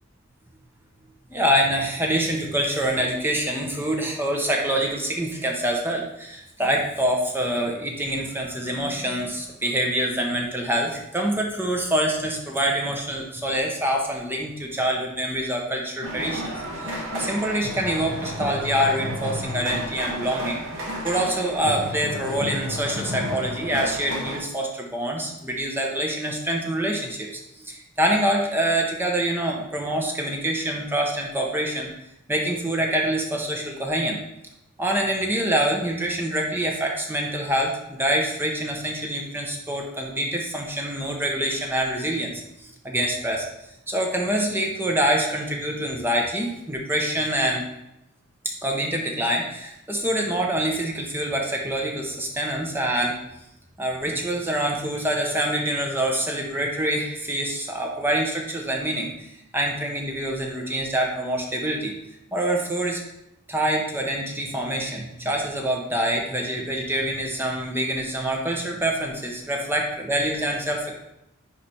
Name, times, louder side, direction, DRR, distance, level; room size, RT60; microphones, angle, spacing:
voice 1, 1.3-20.6 21.0-31.9 32.3-34.2 34.8-43.5 43.9-47.6 48.6-53.2 53.8-61.9 62.3-63.0 63.5-70.9, right 1 dB, 10° right, 0 dB, 0.9 m, -25 dB
sound 1, 16.0-24.4, equal, 60° right, 2.0 m, -32 dB
9.9 x 3.3 x 4.2 m, 0.86 s
head